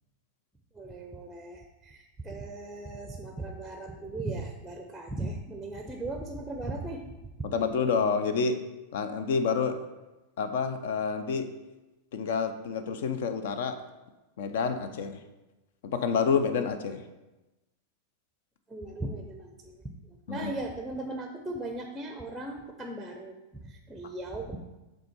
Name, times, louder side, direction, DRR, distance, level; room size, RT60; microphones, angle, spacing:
voice 1, 0.7-7.1 18.7-24.6, right 2 dB, 5° right, 4 dB, 0.6 m, -38 dB
voice 2, 7.4-8.6 8.9-9.8 10.4-11.5 12.1-13.8 14.4-15.2 15.8-17.0 20.3-20.5, left 5 dB, 55° left, 9 dB, 0.5 m, -28 dB
7.5 x 3.6 x 4.3 m, 1.1 s
figure-of-eight pair, 90°, 0 cm